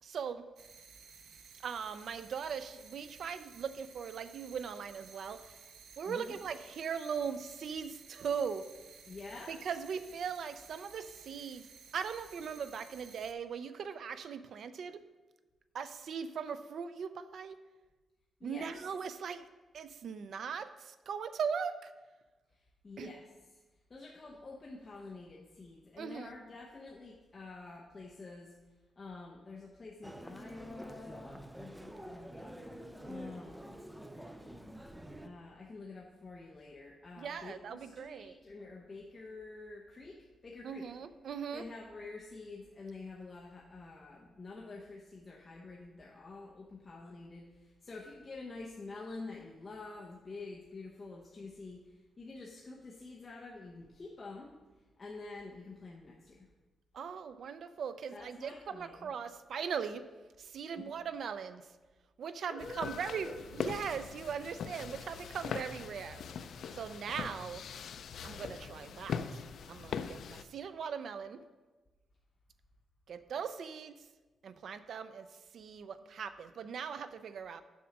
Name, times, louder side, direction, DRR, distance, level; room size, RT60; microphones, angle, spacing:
voice 1, 0.0-0.4 1.6-5.4 6.0-8.7 9.5-11.6 11.9-15.0 15.7-17.6 18.4-19.4 19.7-21.9 23.0-23.1 26.0-26.3 37.2-38.4 40.6-41.6 56.9-60.1 60.4-61.6 62.2-66.2 66.7-67.6 68.2-69.2 69.7-71.4 73.1-73.9 74.4-75.3 75.5-77.6, right 6 dB, 60° right, 11 dB, 0.4 m, -39 dB
sound 1, 0.6-13.3, right 6 dB, 90° right, 0.7 m, -56 dB
voice 2, 6.0-6.4 9.0-9.6 18.4-18.7 22.8-23.3 23.9-28.5 29.0-32.6 33.0-33.6 35.2-40.9 41.5-54.6 55.0-56.5 58.1-59.1 60.7-60.9 62.5-63.4, left 3 dB, 25° left, -3 dB, 0.8 m, -48 dB
Human voice, 30.0-35.3, equal, 5° right, 0.4 m, -47 dB
sound 2, 62.6-70.4, left 6 dB, 65° left, 0.4 m, -41 dB
7.2 x 6.2 x 5.9 m, 1.2 s
wide cardioid pair, 170°, 0 cm